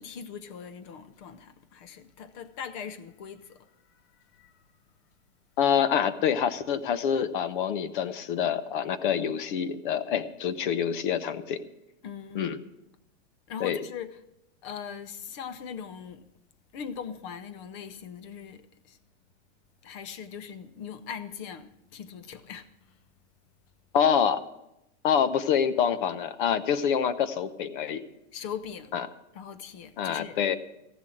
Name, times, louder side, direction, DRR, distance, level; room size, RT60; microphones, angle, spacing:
voice 1, 0.0-3.7 4.3-4.5 12.0-12.5 13.5-14.2 14.6-16.3 16.7-19.0 19.8-22.7 28.3-28.9 29.3-30.4, left 7 dB, 25° left, 0.6 m, -40 dB
voice 2, 5.6-11.6 12.3-12.6 13.6-13.8 23.9-24.4 25.0-28.1 28.9-29.1 30.0-30.6, left 8 dB, 45° left, 0.9 m, -26 dB
15.0 x 7.4 x 7.7 m
supercardioid pair, 175°, 35 cm